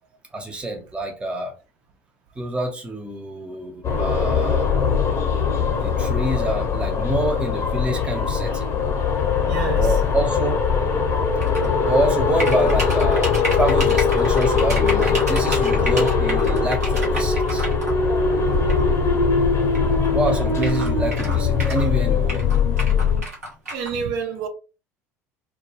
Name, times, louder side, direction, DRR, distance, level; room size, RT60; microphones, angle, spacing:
voice 1, 0.3-1.5 2.4-4.7 5.8-8.7 9.8-10.6 11.8-17.7 20.1-22.5, right 1 dB, 10° right, 0.7 m, -27 dB
sound 1, 3.8-23.2, left 5 dB, 35° left, 0.8 m, -21 dB
voice 2, 9.4-9.9 23.7-24.5, right 6 dB, 60° right, 0.8 m, -28 dB
sound 2, 11.4-11.7 12.4-17.9 18.7-18.8 19.7-19.8 20.0-20.1 20.6-21.9 22.3-23.9, right 1 dB, 85° right, 0.9 m, -30 dB
2.3 x 2.1 x 3.1 m
figure-of-eight pair, 70°, 8 cm